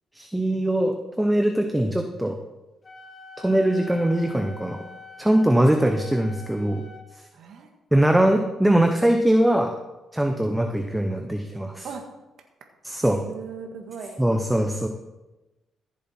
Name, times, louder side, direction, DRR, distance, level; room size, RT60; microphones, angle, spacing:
voice 1, 0.1-2.4 3.4-4.8 5.2-6.8 7.1-7.2 7.9-9.8 10.1-11.9 12.8-13.2 14.2-14.9, right 1 dB, 5° right, 4 dB, 0.9 m, -21 dB
Wind instrument woodwind instrument, 2.8-7.1, left 5 dB, 30° left, 1.6 m, -44 dB
voice 2, 7.3-7.7 11.8-12.0 13.2-14.2, right 6 dB, 65° right, 2 dB, 1.7 m, -37 dB
14.5 x 7.4 x 4.5 m, 1.0 s
cardioid pair, 90°, 0 cm